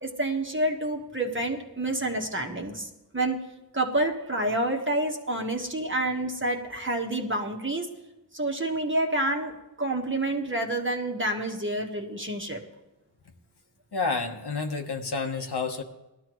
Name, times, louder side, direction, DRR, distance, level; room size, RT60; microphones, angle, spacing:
voice 1, 0.0-3.4 3.7-7.9 8.3-12.6, right 1 dB, 25° right, 2 dB, 1.4 m, -28 dB
voice 2, 13.9-15.8, left 4 dB, 65° left, 4 dB, 1.2 m, -29 dB
19.5 x 12.0 x 3.1 m, 0.99 s
wide cardioid pair, 60°, 43 cm